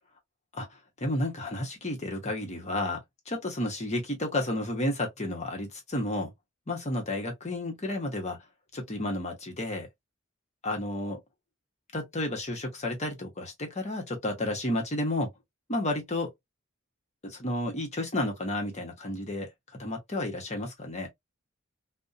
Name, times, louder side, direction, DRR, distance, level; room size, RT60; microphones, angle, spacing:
voice 1, 0.5-3.0 3.3-6.3 6.7-8.4 8.7-9.9 10.6-11.2 11.9-15.3 15.7-16.3 17.2-19.5 19.8-21.1, left 1 dB, 35° left, 0.9 m, -31 dB
2.5 x 2.1 x 2.5 m
head